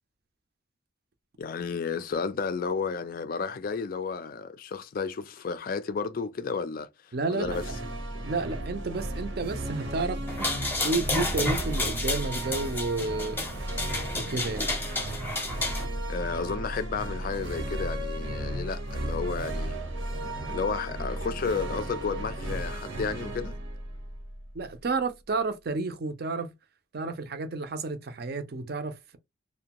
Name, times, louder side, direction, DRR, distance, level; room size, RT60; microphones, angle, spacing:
voice 1, 1.4-7.6 16.1-19.8 20.5-23.5, left 5 dB, 45° left, 0.3 m, -32 dB
voice 2, 7.1-7.8 8.2-10.2 10.8-13.4 14.1-14.7 24.5-26.5 26.9-29.2, right 3 dB, 50° right, 0.5 m, -31 dB
sound 1, 7.4-24.8, right 1 dB, 75° right, 0.8 m, -34 dB
sound 2, 10.3-15.8, left 2 dB, 10° left, 0.7 m, -31 dB
2.5 x 2.1 x 2.9 m
head